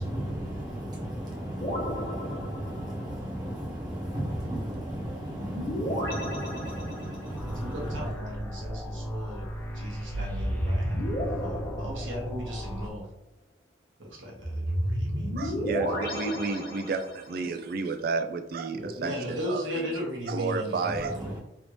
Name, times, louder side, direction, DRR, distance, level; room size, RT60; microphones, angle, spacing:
voice 1, 0.0-8.2 20.9-21.4, right 1 dB, 20° right, 0.9 m, -35 dB
sound 1, 1.6-3.1 5.3-7.4 10.1-12.6 14.4-17.4, equal, 50° left, 1.2 m, -32 dB
sound 2, 7.3-12.9, equal, 10° left, 0.5 m, -36 dB
voice 2, 7.5-9.5 9.7-13.0 14.0-15.9 18.7-21.3, equal, 90° right, 1.1 m, -37 dB
voice 3, 15.4-17.0 17.3-20.0 20.3-21.2, right 4 dB, 50° right, 0.3 m, -31 dB
3.4 x 2.7 x 3.0 m
head